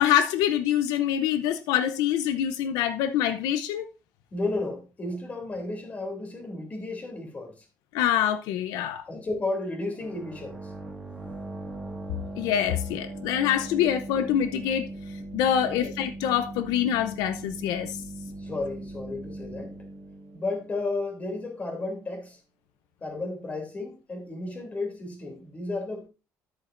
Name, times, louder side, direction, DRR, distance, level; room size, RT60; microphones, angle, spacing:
voice 1, 0.0-3.9 7.9-9.0 12.4-14.9 15.3-18.0, left 10 dB, 85° left, 0.7 m, -25 dB
voice 2, 4.3-7.6 9.1-10.7 15.6-15.9 18.3-19.8 20.3-22.4 23.0-26.1, left 2 dB, 25° left, 3.0 m, -33 dB
sound 1, 10.0-21.5, right 2 dB, 5° right, 1.8 m, -40 dB
10.5 x 8.6 x 2.6 m
cardioid pair, 150°, 6 cm